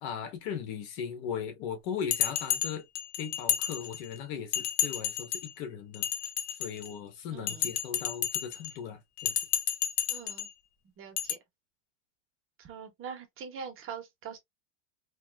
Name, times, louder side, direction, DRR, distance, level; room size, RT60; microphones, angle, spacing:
voice 1, 0.0-2.8 3.2-6.1 6.6-9.4, left 7 dB, 70° left, 1.4 m, -38 dB
Bell, 2.1-4.2 4.5-5.5 5.9-7.0 7.5-8.7 9.2-10.5 11.2-11.3, left 11 dB, 50° left, 0.8 m, -31 dB
voice 2, 7.3-7.7 10.1-10.5 11.0-11.4 12.6-14.4, right 6 dB, 40° right, 1.2 m, -43 dB
3.2 x 2.7 x 2.4 m
supercardioid pair, 125°, 34 cm